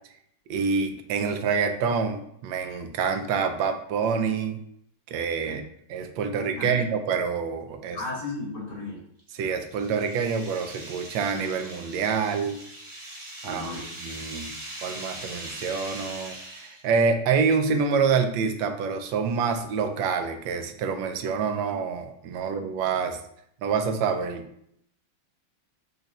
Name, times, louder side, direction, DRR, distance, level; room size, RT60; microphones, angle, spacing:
voice 1, 0.5-4.6 5.1-5.6 5.9-8.0 9.3-12.6 13.4-13.7 14.0-14.5 14.8-23.2 23.6-24.5, right 5 dB, 90° right, 6 dB, 1.3 m, -27 dB
voice 2, 7.9-9.0 13.4-13.9, left 2 dB, 60° left, -7 dB, 2.5 m, -34 dB
sound 1, 9.2-16.9, right 1 dB, 30° right, 0.5 m, -41 dB
5.4 x 2.4 x 4.0 m, 0.71 s
omnidirectional pair, 2.0 m